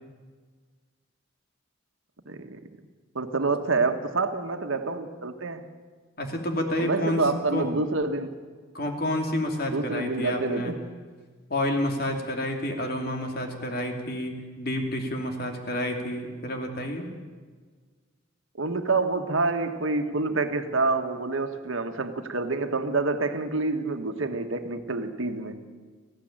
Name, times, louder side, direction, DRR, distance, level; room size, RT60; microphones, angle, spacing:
voice 1, 2.3-2.6 3.1-5.6 6.8-8.3 9.7-10.8 18.6-25.6, right 3 dB, 80° right, 7 dB, 1.5 m, -27 dB
voice 2, 6.2-7.8 8.7-10.7 11.5-17.1, left 1 dB, 50° left, 3 dB, 2.8 m, -29 dB
18.0 x 16.0 x 8.9 m, 1.5 s
head